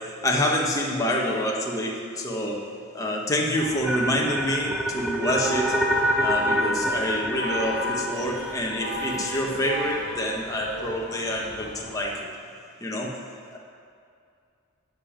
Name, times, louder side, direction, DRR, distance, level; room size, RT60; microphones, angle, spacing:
voice 1, 0.0-2.6 2.9-5.7 6.2-12.3 12.8-13.2 13.5-13.6, left 1 dB, 15° left, -2 dB, 1.4 m, -27 dB
People honking incessantly, 3.5-12.0, left 1 dB, 60° right, 2.1 m, -34 dB
sound 1, 3.8-10.0, equal, ahead, 0.3 m, -28 dB
12.5 x 5.3 x 8.8 m, 2.4 s
head